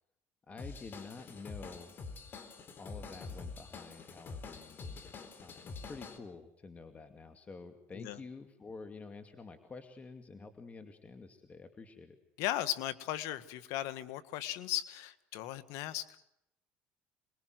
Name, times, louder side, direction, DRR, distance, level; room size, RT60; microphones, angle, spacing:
voice 1, 0.5-2.0 2.8-12.2, left 4 dB, 25° left, 7 dB, 2.6 m, -49 dB
Drum kit / Drum, 0.6-6.2, left 4 dB, 40° left, 4.4 m, -46 dB
voice 2, 12.4-16.1, left 14 dB, 75° left, 12 dB, 1.8 m, -37 dB
27.5 x 21.5 x 7.9 m, 0.78 s
supercardioid pair, 95°, 5 cm